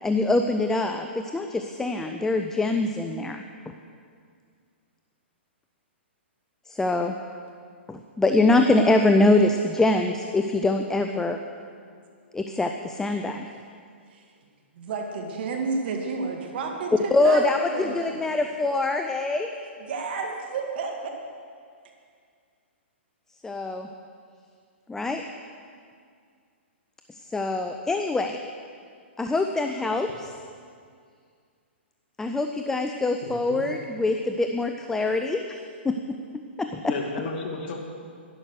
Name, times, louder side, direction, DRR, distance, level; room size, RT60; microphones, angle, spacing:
voice 1, 0.0-3.7 6.7-7.1 7.9-11.4 12.3-13.5 17.1-19.5 23.4-23.9 24.9-25.2 27.1-28.4 29.2-30.3 32.2-35.6 35.8-36.9, left 2 dB, 5° left, 5 dB, 0.6 m, -24 dB
voice 2, 14.7-18.2 19.0-19.1 19.6-21.2, right 4 dB, 55° right, 2 dB, 2.2 m, -31 dB
voice 3, 33.2-33.6 36.8-37.7, left 4 dB, 50° left, 1 dB, 2.3 m, -33 dB
11.5 x 11.5 x 6.5 m, 2.2 s
hypercardioid pair, 130°, 7 cm